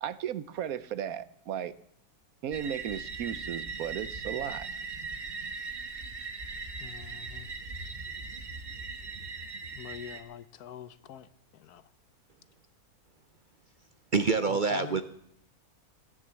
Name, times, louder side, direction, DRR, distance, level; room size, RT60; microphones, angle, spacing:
voice 1, 0.0-1.8 2.4-4.7, right 9 dB, 70° right, 16 dB, 1.2 m, -35 dB
sound 1, 2.5-10.2, right 4 dB, 30° right, 1.5 m, -39 dB
voice 2, 6.8-7.5 9.7-11.9 14.5-15.0, left 9 dB, 85° left, 15 dB, 1.4 m, -45 dB
voice 3, 14.1-15.0, right 4 dB, 45° right, 10 dB, 0.6 m, -26 dB
16.5 x 10.0 x 7.5 m, 0.73 s
omnidirectional pair, 1.6 m